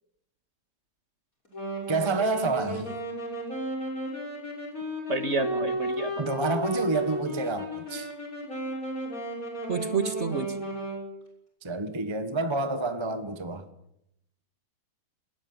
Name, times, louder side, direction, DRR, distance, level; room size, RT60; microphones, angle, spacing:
Wind instrument woodwind instrument, 1.5-11.0, right 1 dB, 50° left, 6.8 m, -33 dB
voice 1, 1.9-2.9 6.2-8.1 11.6-13.7, right 3 dB, 15° right, 1.3 m, -29 dB
voice 2, 5.1-6.3 9.7-10.5, right 4 dB, 40° right, 1.9 m, -29 dB
21.0 x 17.0 x 9.6 m
omnidirectional pair, 1.9 m